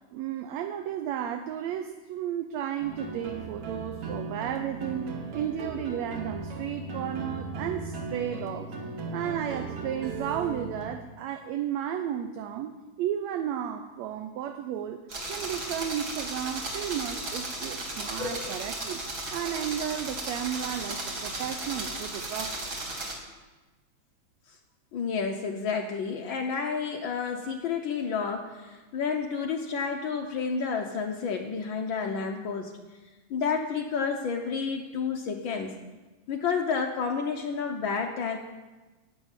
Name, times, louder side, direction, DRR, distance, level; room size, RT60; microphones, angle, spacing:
voice 1, 0.1-8.7 9.1-15.0 15.3-19.0 19.3-22.6, right 10 dB, 75° right, 7 dB, 1.8 m, -33 dB
sound 1, 2.8-11.0, right 3 dB, 55° right, 2.1 m, -37 dB
sound 2, 15.1-23.1, right 2 dB, 35° right, 2.0 m, -35 dB
voice 2, 18.2-18.6 24.9-32.7 33.3-35.7 36.3-38.4, left 5 dB, 90° left, 2 dB, 1.0 m, -30 dB
Piano, 26.3-27.3, equal, 20° right, 2.4 m, -51 dB
11.0 x 8.2 x 9.0 m, 1.2 s
omnidirectional pair, 3.5 m